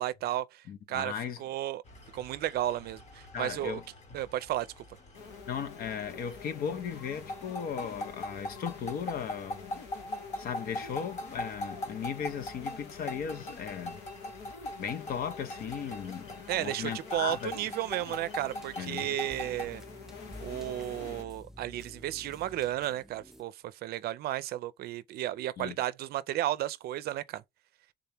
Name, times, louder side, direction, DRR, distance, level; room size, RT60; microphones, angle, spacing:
voice 1, 0.0-1.1 1.4-1.8 2.1-3.8 4.1-4.7 16.5-19.8 20.4-23.5 23.8-27.4, right 13 dB, 65° right, 0.5 m, -33 dB
voice 2, 0.7-1.4 3.3-3.8 5.5-9.8 10.4-14.0 14.8-17.5 18.8-19.2 25.6-25.8, left 7 dB, 60° left, 0.7 m, -37 dB
sound 1, 1.9-19.7, left 1 dB, 40° left, 1.1 m, -42 dB
sound 2, 5.1-21.2, left 5 dB, 85° left, 1.2 m, -48 dB
sound 3, 18.4-23.4, equal, ahead, 0.4 m, -50 dB
3.7 x 2.8 x 3.4 m
cardioid pair, 110°, 17 cm